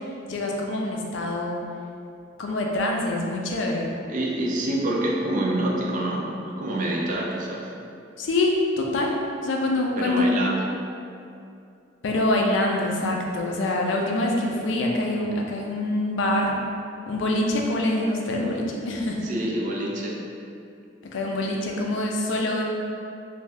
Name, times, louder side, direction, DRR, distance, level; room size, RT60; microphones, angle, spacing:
voice 1, 0.3-1.6 2.4-3.9 8.2-9.2 9.4-10.3 12.0-16.5 17.1-19.2 21.1-22.6, left 1 dB, 70° left, 0 dB, 0.4 m, -25 dB
voice 2, 4.1-7.7 10.0-10.8 19.2-20.2, right 1 dB, 45° right, -2 dB, 0.4 m, -27 dB
2.6 x 2.2 x 3.2 m, 2.5 s
head